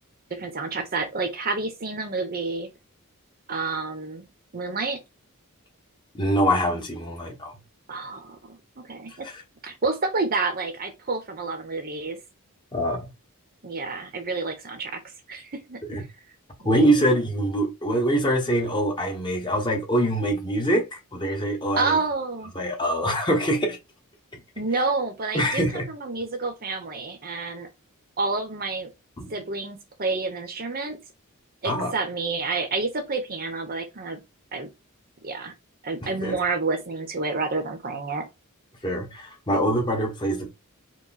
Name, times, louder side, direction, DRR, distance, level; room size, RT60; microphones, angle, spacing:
voice 1, 0.3-2.7 3.5-4.3 4.5-5.0 7.9-9.1 9.6-12.2 13.6-15.0 15.3-15.8 16.6-16.8 21.8-22.5 24.6-27.7 28.2-28.9 29.3-31.0 31.6-34.2 34.5-34.7 35.2-35.5 35.8-38.3 39.5-39.6, right 3 dB, 45° right, 0.9 m, -29 dB
voice 2, 6.1-7.5 9.2-9.4 12.7-13.1 15.9-16.0 16.6-22.0 22.5-23.8 25.3-25.9 29.2-29.3 31.6-31.9 36.0-36.4 38.8-40.5, right 1 dB, 20° left, 1.0 m, -24 dB
4.6 x 2.2 x 4.1 m
head